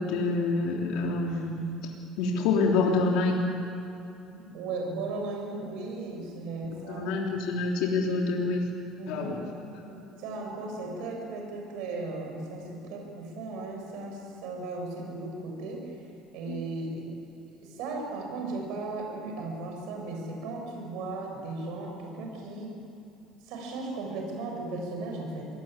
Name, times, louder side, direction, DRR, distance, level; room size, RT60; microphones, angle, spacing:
voice 1, 0.0-1.6 2.2-3.4 6.9-8.7 9.1-9.4, left 3 dB, 75° left, -1 dB, 3.6 m, -26 dB
voice 2, 4.3-7.1 9.0-9.4 9.8-16.0 16.3-17.2 17.6-22.7 23.4-25.5, right 3 dB, 75° right, 2 dB, 7.3 m, -36 dB
26.0 x 20.0 x 9.2 m, 2.7 s
cardioid pair, 140°, 0 cm